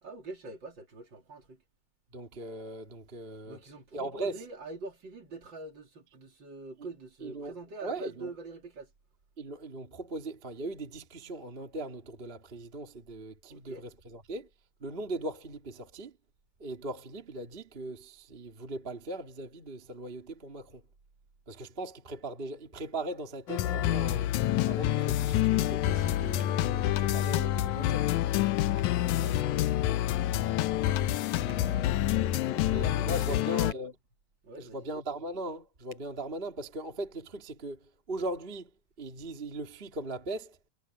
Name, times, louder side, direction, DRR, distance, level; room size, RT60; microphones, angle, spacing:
voice 1, 0.0-1.6 3.4-8.9 13.5-13.9 29.1-29.7 31.0-32.7 32.9-33.4 34.4-34.9, right 3 dB, 35° right, 3.4 m, -44 dB
voice 2, 2.1-3.6 3.9-4.4 7.2-7.5 7.8-8.3 9.4-14.5 14.8-16.1 16.6-20.8 21.5-24.4 24.7-28.1 31.3-32.0 32.7-34.0 34.5-37.8 38.1-38.7 39.0-40.6, right 1 dB, 20° right, 2.2 m, -39 dB
sound 1, 23.5-33.7, left 13 dB, 80° left, 2.2 m, -27 dB
sound 2, 28.7-28.9 31.4-31.7 33.7-33.9 35.9-36.1, right 5 dB, 60° right, 7.2 m, -56 dB
omnidirectional pair, 3.5 m